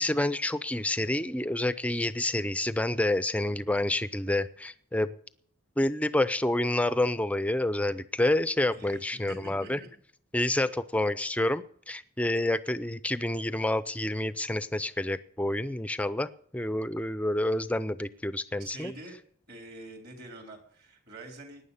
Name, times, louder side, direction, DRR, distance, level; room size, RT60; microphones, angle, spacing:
voice 1, 0.0-5.1 5.8-9.8 10.3-18.9, left 1 dB, 5° left, 14 dB, 0.5 m, -28 dB
voice 2, 8.7-9.9 18.6-19.2 19.5-21.7, right 2 dB, 50° right, 3 dB, 3.6 m, -46 dB
18.0 x 10.0 x 5.5 m, 0.62 s
head